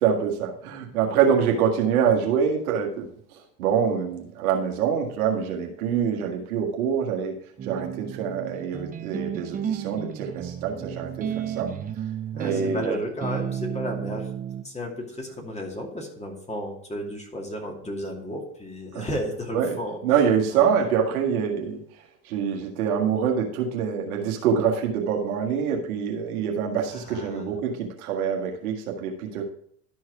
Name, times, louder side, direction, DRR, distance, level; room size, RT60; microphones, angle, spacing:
voice 1, 0.0-7.3 7.6-11.7 12.4-13.0 18.9-19.1 19.5-19.8 20.0-21.8 22.2-29.4, right 7 dB, 75° right, 1 dB, 1.8 m, -25 dB
sound 1, 7.6-14.6, right 9 dB, 20° right, 0.5 m, -32 dB
voice 2, 12.3-14.3 14.6-20.0 20.5-20.9 26.9-27.6, equal, 15° left, 1 dB, 2.4 m, -33 dB
12.5 x 4.7 x 4.7 m, 0.63 s
hypercardioid pair, 85°, 44 cm